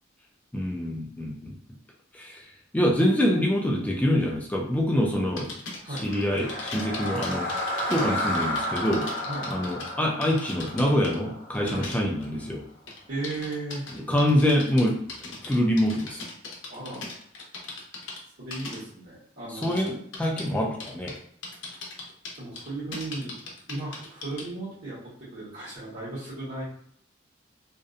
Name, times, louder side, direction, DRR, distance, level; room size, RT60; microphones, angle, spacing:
voice 1, 0.5-1.5 2.1-2.4 2.7-5.5 5.9-9.1 9.5-12.6 14.1-14.9 15.4-16.2 19.6-21.1, equal, 10° left, -1 dB, 0.3 m, -25 dB
sound 1, 5.4-9.9 10.2-11.2 11.5-12.4 12.9-18.2 18.5-18.8 19.6-20.5 20.8-21.2 21.4-24.5, left 3 dB, 80° left, 0.6 m, -39 dB
sound 2, 6.0-12.2, left 1 dB, 45° left, 0.8 m, -32 dB
voice 2, 13.1-13.8 16.7-17.0 18.4-19.8 22.3-23.3 23.7-26.6, right 2 dB, 60° right, -10 dB, 1.1 m, -35 dB
2.6 x 2.0 x 2.4 m, 0.65 s
head